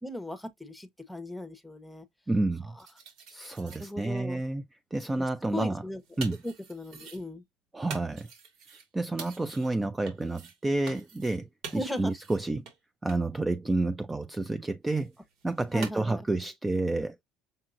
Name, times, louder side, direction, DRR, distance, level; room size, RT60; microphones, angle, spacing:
voice 1, 0.0-2.0 3.6-4.4 5.2-5.3 5.5-6.0 6.4-7.4 11.7-12.1 15.7-16.2, left 1 dB, 5° left, 1.2 m, -37 dB
voice 2, 2.3-2.8 3.3-4.6 4.9-5.8 6.2-6.4 7.7-8.3 8.9-11.5 11.7-12.7 13.0-15.1 15.4-17.2, right 2 dB, 15° right, 0.5 m, -29 dB
sound 1, 2.8-3.9 5.7-7.2 7.9-8.9 9.2-9.7 10.1-10.6 10.9-11.4 11.6-12.4 12.7-12.8 13.1-13.2 15.0-15.9, right 5 dB, 70° right, 2.4 m, -45 dB
6.5 x 2.8 x 2.5 m
cardioid pair, 110°, 0 cm